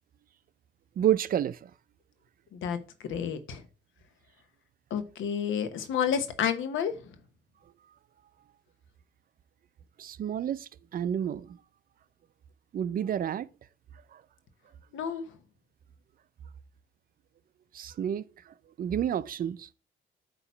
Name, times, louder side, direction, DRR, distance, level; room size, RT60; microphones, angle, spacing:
voice 1, 1.0-1.7 10.0-11.6 12.7-13.5 14.1-14.2 17.7-19.7, right 10 dB, 45° right, 0.4 m, -30 dB
voice 2, 3.1-3.6 4.9-7.0 14.9-15.3, left 8 dB, 80° left, 1.0 m, -30 dB
8.2 x 3.0 x 5.6 m
cardioid pair, 90°, 20 cm